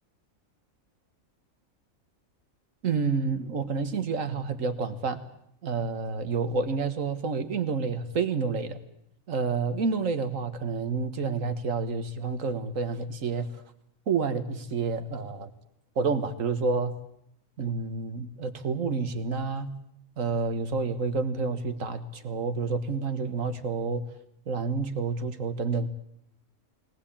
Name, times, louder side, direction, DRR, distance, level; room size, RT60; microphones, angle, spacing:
voice 1, 2.8-5.2 5.6-8.8 9.3-13.5 14.1-15.5 16.0-16.9 17.6-19.7 20.2-24.0 24.5-25.9, right 4 dB, 70° right, 10 dB, 1.8 m, -29 dB
21.5 x 18.5 x 8.7 m, 0.74 s
omnidirectional pair, 1.4 m